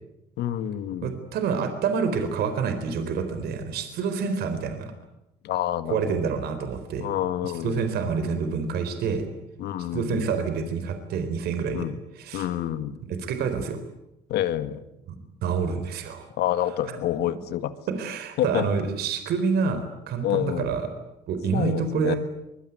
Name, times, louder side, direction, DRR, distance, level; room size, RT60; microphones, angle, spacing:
voice 1, 0.4-1.1 5.4-6.3 7.0-7.8 9.6-10.3 11.7-12.0 12.3-13.0 14.3-14.8 16.4-17.7 18.4-18.7 20.2-20.7 21.5-22.1, left 12 dB, 80° left, 11 dB, 2.1 m, -28 dB
voice 2, 1.0-4.9 5.8-7.1 7.4-9.3 9.9-11.9 12.2-12.5 13.1-13.8 15.1-15.2 15.4-16.3 16.9-17.0 18.0-20.9 21.3-22.2, right 5 dB, 70° right, 8 dB, 4.0 m, -27 dB
24.5 x 21.5 x 9.4 m, 0.88 s
cardioid pair, 110°, 17 cm